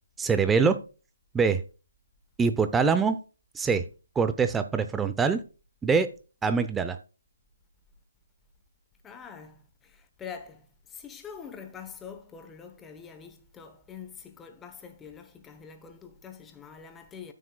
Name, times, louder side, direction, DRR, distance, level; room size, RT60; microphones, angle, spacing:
voice 1, 0.2-0.8 1.3-1.6 2.4-3.2 3.5-3.8 4.2-5.4 5.8-6.1 6.4-7.0, right 5 dB, 10° right, 0.7 m, -24 dB
voice 2, 9.0-17.3, left 6 dB, 10° left, 1.0 m, -45 dB
13.5 x 6.0 x 2.3 m
figure-of-eight pair, 150°, 0 cm